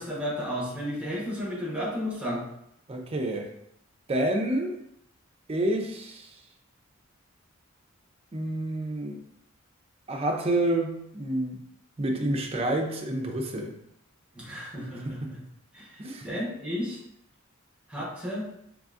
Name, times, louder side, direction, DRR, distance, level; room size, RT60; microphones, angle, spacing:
voice 1, 0.0-2.4 14.3-15.4 15.7-17.0 17.9-18.5, equal, 5° right, -6 dB, 1.0 m, -33 dB
voice 2, 2.9-3.5 4.1-4.7 5.5-6.4 8.3-9.2 10.1-11.6 12.0-13.7 15.2-15.3 16.0-16.3, right 1 dB, 30° right, 2 dB, 0.5 m, -28 dB
3.7 x 3.2 x 2.4 m, 0.76 s
head